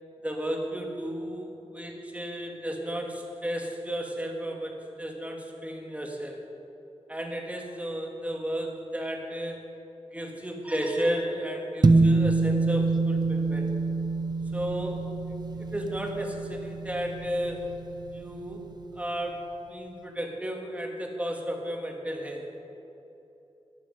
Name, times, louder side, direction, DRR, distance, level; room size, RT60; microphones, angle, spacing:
voice 1, 0.2-6.4 7.1-9.7 10.1-13.7 14.5-15.0 15.6-17.6 18.1-18.7 19.0-19.4 19.7-22.4, equal, 10° right, 1 dB, 1.8 m, -33 dB
sound 1, 11.8-18.4, right 3 dB, 40° right, 0.7 m, -26 dB
14.5 x 9.8 x 5.4 m, 2.9 s
wide cardioid pair, 95°, 11 cm